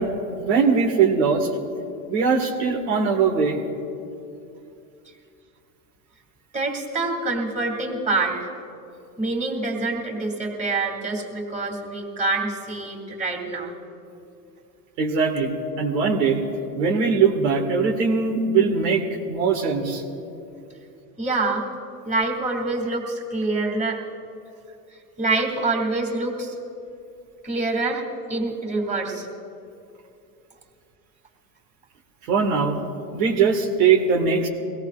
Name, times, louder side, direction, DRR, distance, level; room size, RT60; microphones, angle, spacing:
voice 1, 0.0-1.5 2.1-3.6 15.0-15.5 15.8-16.4 16.8-20.0 32.3-32.8 33.1-34.5, right 5 dB, 80° right, 0 dB, 2.0 m, -21 dB
voice 2, 6.5-8.5 9.2-13.7 21.2-21.7 22.0-24.0 25.2-26.6 27.4-28.0 28.3-29.3, right 3 dB, 15° right, 0 dB, 2.8 m, -26 dB
23.0 x 17.5 x 2.5 m, 2.6 s
supercardioid pair, 105°, 49 cm